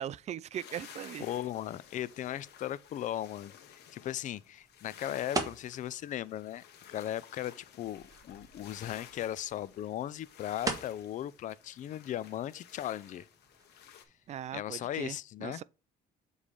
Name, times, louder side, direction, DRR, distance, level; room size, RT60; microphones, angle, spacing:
voice 1, 0.0-1.2 14.3-15.6, right 10 dB, 40° right, 0.4 m, -39 dB
sound 1, 0.5-14.0, left 9 dB, 80° left, 1.2 m, -54 dB
voice 2, 1.2-6.6 6.9-13.3 14.5-15.6, left 12 dB, 50° left, 0.4 m, -37 dB
sound 2, 1.2-14.5, right 3 dB, 20° right, 1.3 m, -44 dB
7.5 x 3.3 x 5.0 m
cardioid pair, 110°, 17 cm